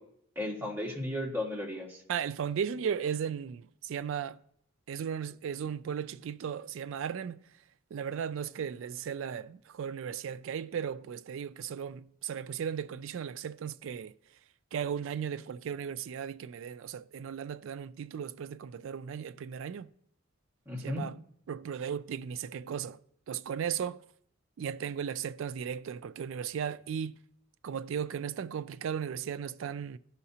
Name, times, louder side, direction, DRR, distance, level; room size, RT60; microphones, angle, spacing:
voice 1, 0.3-2.0 20.7-21.0, left 1 dB, 10° right, 1.5 m, -35 dB
voice 2, 2.1-4.4 4.9-7.4 7.9-14.1 14.7-19.9 20.8-21.2 21.5-23.0 23.3-24.0 24.6-27.2 27.6-30.0, right 7 dB, 60° right, 0.3 m, -36 dB
14.0 x 5.7 x 2.8 m
head